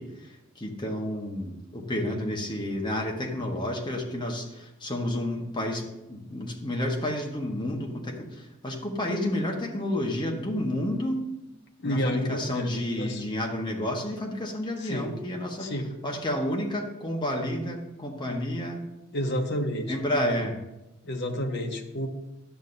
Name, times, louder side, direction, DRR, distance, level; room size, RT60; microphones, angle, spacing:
voice 1, 0.0-11.2 11.8-15.7 16.0-18.8 19.9-20.6, left 1 dB, 20° left, 0 dB, 1.1 m, -30 dB
voice 2, 11.8-13.2 14.8-15.1 15.6-15.9 19.1-19.9 21.0-22.1, equal, 55° left, 3 dB, 0.9 m, -30 dB
11.5 x 7.1 x 2.6 m, 0.95 s
head